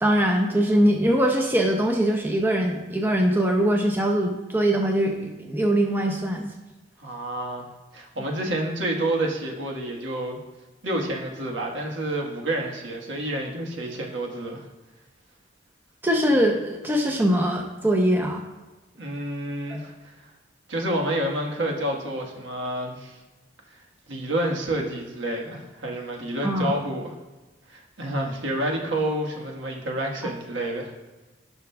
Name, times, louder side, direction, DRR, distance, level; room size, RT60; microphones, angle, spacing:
voice 1, 0.0-6.5 16.0-18.4 19.7-19.8 26.4-26.7, equal, 10° right, 1 dB, 0.6 m, -22 dB
voice 2, 7.0-10.4 10.8-14.7 19.0-20.3 20.7-23.2 24.1-27.1 27.7-30.9, right 1 dB, 80° right, 0 dB, 1.4 m, -29 dB
15.5 x 6.0 x 2.3 m, 1.1 s
head